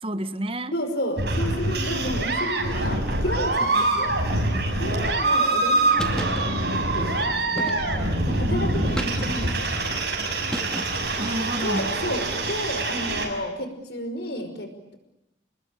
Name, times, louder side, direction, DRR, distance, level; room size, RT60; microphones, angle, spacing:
voice 1, 0.0-0.7 2.7-3.0 8.5-8.9 11.2-11.9, right 1 dB, 30° right, 11 dB, 1.5 m, -30 dB
voice 2, 0.7-7.8 8.2-9.9 11.6-14.9, left 1 dB, 65° left, 7 dB, 5.4 m, -32 dB
sound 1, 1.2-13.3, right 2 dB, 65° right, 6.7 m, -25 dB
sound 2, 6.0-6.4 7.6-8.1 9.0-9.6 10.5-11.2, equal, 5° left, 2.3 m, -33 dB
28.5 x 20.5 x 8.9 m, 0.88 s
head